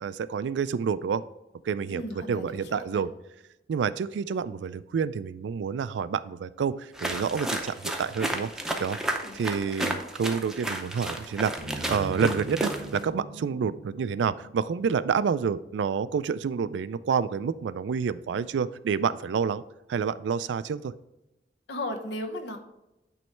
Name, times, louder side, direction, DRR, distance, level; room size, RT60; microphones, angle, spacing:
voice 1, 0.0-1.2 1.6-3.1 3.7-8.5 8.8-9.0 9.3-19.6 19.9-20.9, right 6 dB, 90° right, 16 dB, 0.3 m, -28 dB
voice 2, 1.9-3.0 9.2-9.4 21.7-22.6, left 1 dB, 75° left, 5 dB, 1.0 m, -36 dB
Footsteps - Exterior - running and stop dirty stony path, 6.9-13.1, right 1 dB, 5° right, 0.6 m, -32 dB
sound 1, 11.6-15.9, right 2 dB, 65° right, 0.7 m, -42 dB
9.2 x 3.1 x 4.4 m, 0.92 s
head